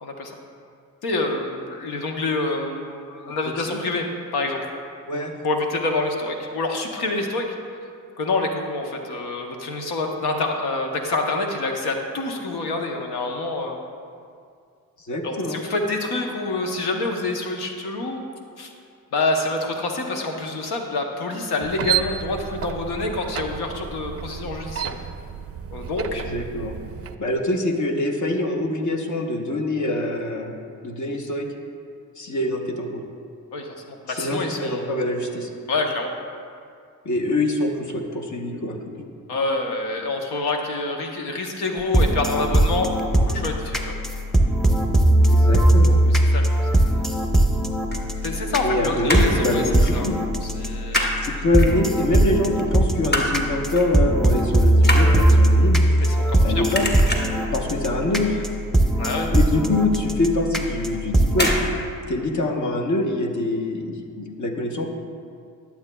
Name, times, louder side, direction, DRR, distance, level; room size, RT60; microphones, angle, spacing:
voice 1, 0.0-0.3 1.0-4.1 4.3-4.7 5.4-7.5 8.2-13.8 15.2-18.2 18.6-18.7 19.1-24.9 25.7-26.2 33.5-34.9 35.7-36.1 39.3-42.9 43.2-44.0 46.1-47.1 48.2-49.6 49.9-50.1 50.4-51.2 56.0-56.7 59.0-59.3, left 2 dB, 90° left, 2 dB, 0.9 m, -27 dB
voice 2, 15.1-15.6 26.2-26.8 27.2-30.5 30.8-31.5 32.2-33.0 34.1-35.5 37.0-38.7 45.2-46.0 48.6-50.2 51.2-55.8 56.4-56.9 57.5-58.4 59.3-61.5 62.1-64.9, left 2 dB, 50° left, 3 dB, 1.0 m, -24 dB
sound 1, 21.6-27.2, right 9 dB, 40° right, 0.4 m, -31 dB
sound 2, 41.8-61.5, right 1 dB, ahead, 0.7 m, -20 dB
sound 3, 47.9-48.7 48.9-49.4 49.8-50.0 50.3-51.2 51.6-52.2 52.6-53.4 53.8-54.0 54.3-56.4 56.7-57.5 57.9-58.2 58.5-58.6 58.9-59.0 59.5-59.6 60.4-60.7 61.3-61.7 61.9-62.0, left 1 dB, 25° left, 1.2 m, -26 dB
11.5 x 7.1 x 2.2 m, 2.3 s
supercardioid pair, 50°, 38 cm